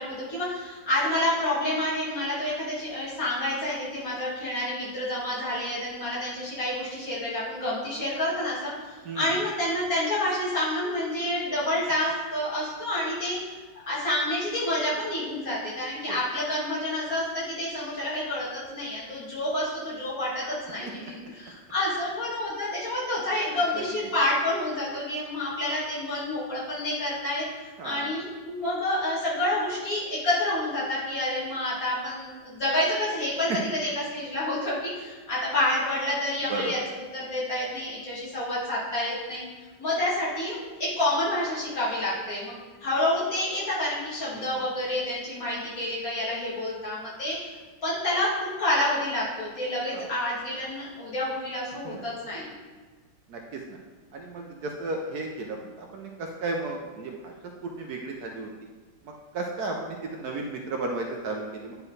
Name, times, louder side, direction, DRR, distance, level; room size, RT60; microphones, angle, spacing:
voice 1, 0.0-13.4 13.9-27.5 27.8-36.8 37.1-39.4 39.8-47.6 47.8-52.5, left 1 dB, 50° left, -8 dB, 2.5 m, -28 dB
voice 2, 9.0-9.4 16.1-16.2 20.8-20.9 23.8-24.1 27.8-28.1 36.5-36.9 44.3-44.5 49.9-50.0 51.8-52.1 53.3-53.8 54.1-57.3 57.6-58.5 59.0-61.8, right 3 dB, 65° right, 1 dB, 1.1 m, -34 dB
9.4 x 4.8 x 3.2 m, 1.4 s
omnidirectional pair, 2.0 m